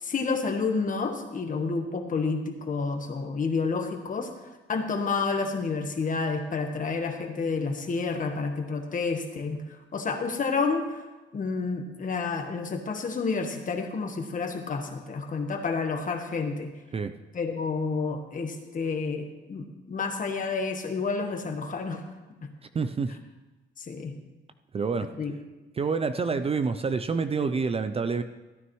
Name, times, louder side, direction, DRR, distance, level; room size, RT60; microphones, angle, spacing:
voice 1, 0.0-4.3 4.7-9.6 9.9-11.0 11.3-16.7 17.3-22.0 22.4-22.5 23.8-24.1 25.2-25.3, left 4 dB, 40° left, 4 dB, 1.3 m, -29 dB
voice 2, 22.7-23.1 24.7-25.1 25.7-28.2, right 5 dB, 30° right, 10 dB, 0.5 m, -27 dB
14.0 x 9.3 x 3.1 m, 1.2 s
cardioid pair, 90°, 20 cm